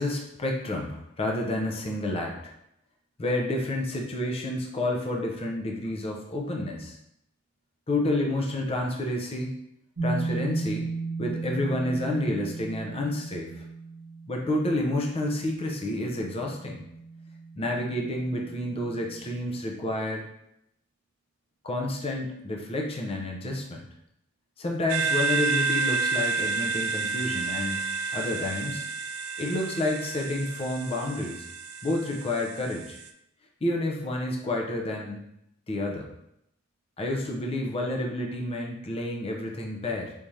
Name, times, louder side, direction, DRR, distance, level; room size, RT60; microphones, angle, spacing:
voice 1, 0.0-2.5 3.2-7.0 7.9-9.5 10.0-10.9 11.2-13.6 14.3-16.8 17.6-20.3 21.6-23.9 24.6-27.9 28.1-28.9 29.4-31.5 31.8-33.0 33.6-35.2 35.7-36.1 37.0-40.1, left 1 dB, 30° left, 0 dB, 0.5 m, -29 dB
sound 1, 10.0-19.4, right 3 dB, 70° right, 0.9 m, -36 dB
sound 2, 24.9-33.1, right 4 dB, 85° right, 0.3 m, -30 dB
3.5 x 2.7 x 3.1 m, 0.79 s
head